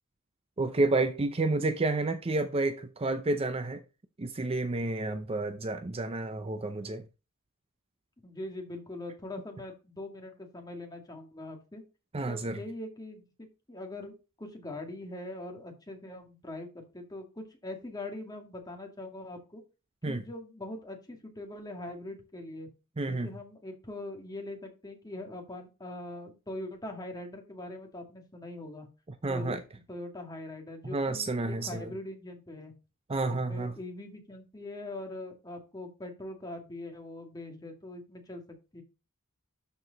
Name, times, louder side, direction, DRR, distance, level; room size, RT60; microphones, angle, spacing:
voice 1, 0.6-3.8 4.2-7.0 12.1-12.6 20.0-20.2 23.0-23.3 29.2-29.6 30.8-31.9 33.1-33.7, right 2 dB, 25° right, 0.6 m, -30 dB
voice 2, 1.2-1.8 8.2-11.8 12.3-19.6 20.0-22.7 23.0-28.9 29.3-29.6 29.9-32.7 33.2-38.8, left 1 dB, 20° left, 2.1 m, -42 dB
12.5 x 4.7 x 4.0 m
head